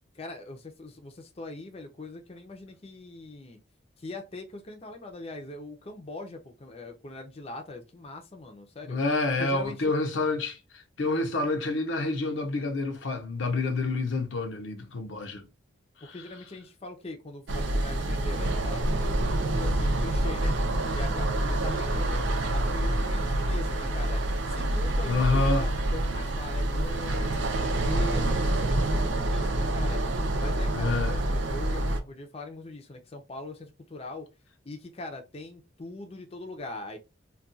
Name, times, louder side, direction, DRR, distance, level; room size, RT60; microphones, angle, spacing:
voice 1, 0.1-3.6 4.0-9.0 9.4-9.9 16.0-20.6 20.9-34.3 34.6-37.0, left 2 dB, 30° left, 0.5 m, -41 dB
voice 2, 8.9-15.4 25.1-25.7 30.7-31.2, left 3 dB, 80° left, 0.6 m, -28 dB
sound 1, 17.5-32.0, right 1 dB, 75° right, 0.5 m, -27 dB
2.3 x 2.3 x 3.8 m
head